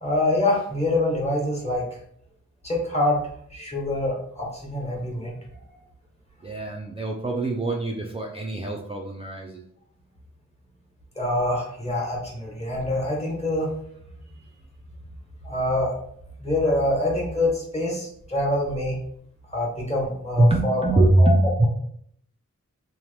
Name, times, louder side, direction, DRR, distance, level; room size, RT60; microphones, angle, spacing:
voice 1, 0.0-1.9 2.6-3.2 3.5-5.3 11.2-13.7 15.4-16.0 16.4-19.0 19.5-21.3, left 1 dB, 20° left, -2 dB, 1.1 m, -25 dB
voice 2, 6.4-9.6 20.3-21.7, right 1 dB, 20° right, -1 dB, 0.3 m, -22 dB
2.9 x 2.1 x 3.2 m, 0.67 s
wide cardioid pair, 55°, 30 cm